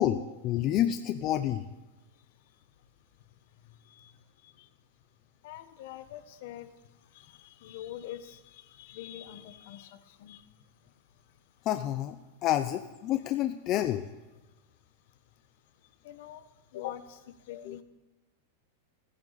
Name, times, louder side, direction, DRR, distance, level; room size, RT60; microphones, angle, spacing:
voice 1, 0.0-1.7 11.6-14.1 17.5-17.7, left 12 dB, 35° left, 9 dB, 0.7 m, -29 dB
voice 2, 2.0-5.1 5.4-11.7 14.4-17.8, left 12 dB, 60° left, 11 dB, 1.3 m, -47 dB
29.5 x 10.5 x 4.2 m, 1.1 s
supercardioid pair, 145°, 0 cm